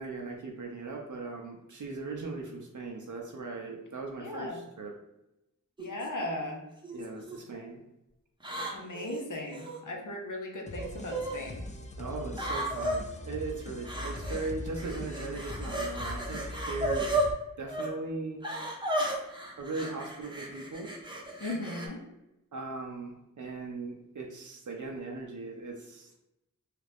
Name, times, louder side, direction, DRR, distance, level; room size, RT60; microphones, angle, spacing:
voice 1, 0.0-4.9 6.9-7.8 12.0-17.1 17.6-18.4 19.6-20.9 22.5-26.2, right 3 dB, 65° right, 1 dB, 0.5 m, -39 dB
voice 2, 4.2-4.6 5.8-6.6 8.7-11.6 21.4-22.0, left 1 dB, 65° left, 2 dB, 0.7 m, -37 dB
sound 1, 5.8-6.1 6.8-7.4 8.4-9.8 10.8-11.4 12.3-13.0 13.8-14.5 14.8-17.3 17.7-17.9 18.4-21.9, right 1 dB, 15° right, 0.7 m, -34 dB
sound 2, 10.7-17.3, left 1 dB, 25° left, 0.3 m, -41 dB
2.8 x 2.4 x 3.3 m, 0.91 s
wide cardioid pair, 60°, 33 cm